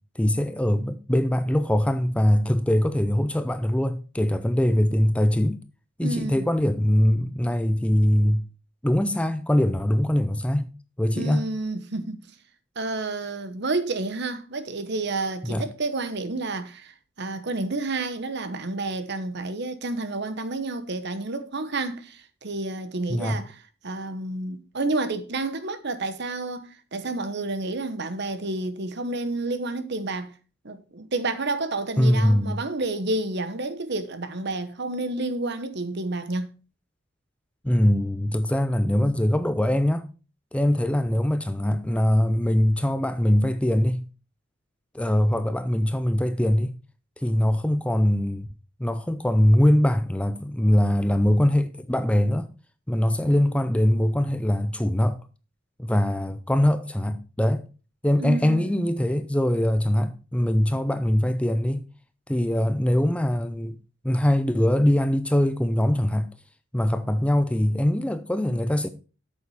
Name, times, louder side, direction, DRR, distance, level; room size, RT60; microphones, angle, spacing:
voice 1, 0.2-5.6 6.0-8.5 8.8-10.7 11.0-11.4 15.4-15.6 23.1-23.4 32.0-32.6 37.6-40.1 40.5-44.0 44.9-46.8 47.2-48.5 48.8-52.5 52.9-55.2 55.8-57.6 58.0-61.8 62.3-63.8 64.0-66.3 66.7-68.9, left 1 dB, 5° left, 0.5 m, -22 dB
voice 2, 6.0-6.5 11.2-12.2 12.8-30.3 30.6-36.5 58.2-58.9, right 2 dB, 55° right, 1.1 m, -30 dB
8.5 x 7.0 x 4.8 m
head